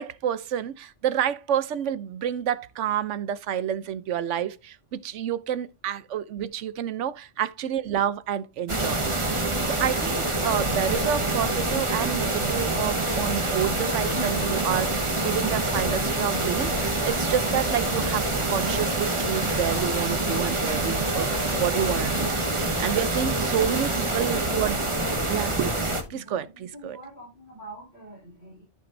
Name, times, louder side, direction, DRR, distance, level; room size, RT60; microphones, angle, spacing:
voice 1, 0.0-9.0 9.7-22.3 22.7-24.8 25.3-25.8 26.1-27.0, right 9 dB, 80° right, 1.0 m, -29 dB
sound 1, 8.7-26.0, right 2 dB, 25° right, 1.3 m, -26 dB
voice 2, 22.8-23.9 26.1-28.6, right 1 dB, 75° left, 5.4 m, -45 dB
13.5 x 6.0 x 2.6 m
omnidirectional pair, 1.2 m